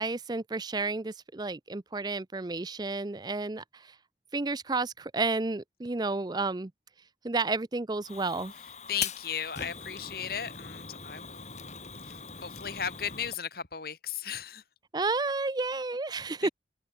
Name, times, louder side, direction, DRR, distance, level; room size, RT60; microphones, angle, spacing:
voice 1, 0.0-4.0 4.3-6.7 7.2-8.5 14.9-16.5, right 3 dB, 25° right, 0.5 m, -31 dB
Fire, 8.0-13.4, left 6 dB, 40° left, 4.6 m, -41 dB
voice 2, 8.9-11.5 12.0-14.6 16.4-16.5, left 8 dB, 55° left, 2.0 m, -36 dB
open air
head